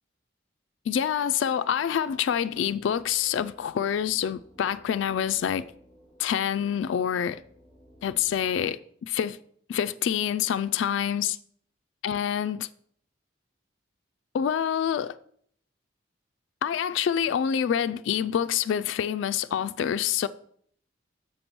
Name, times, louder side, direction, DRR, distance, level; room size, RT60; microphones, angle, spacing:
voice 1, 0.9-5.6 6.2-7.4 8.0-9.4 9.7-11.4 12.0-12.7 14.3-15.1 16.6-20.3, left 8 dB, 75° left, 0.3 m, -27 dB
sound 1, 2.1-8.5, equal, 10° left, 3.0 m, -57 dB
6.7 x 5.2 x 6.0 m
head